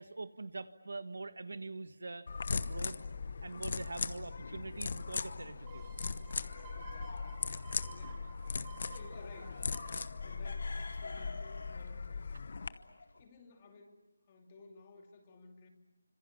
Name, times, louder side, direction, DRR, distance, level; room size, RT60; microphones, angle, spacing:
voice 1, 0.0-3.0 3.4-6.0, right 3 dB, 70° right, 11 dB, 1.6 m, -44 dB
sound 1, 2.3-12.7, left 4 dB, 40° left, 1.0 m, -39 dB
sound 2, 4.8-13.2, left 3 dB, 65° left, 4.2 m, -53 dB
sound 3, 5.7-11.2 11.6-11.7, right 8 dB, 15° right, 2.4 m, -55 dB
voice 2, 6.6-7.4 7.8-9.8 10.2-12.1 13.2-15.7, left 3 dB, 20° left, 4 dB, 2.6 m, -56 dB
29.0 x 26.0 x 7.1 m, 1.1 s
figure-of-eight pair, 175°, 0 cm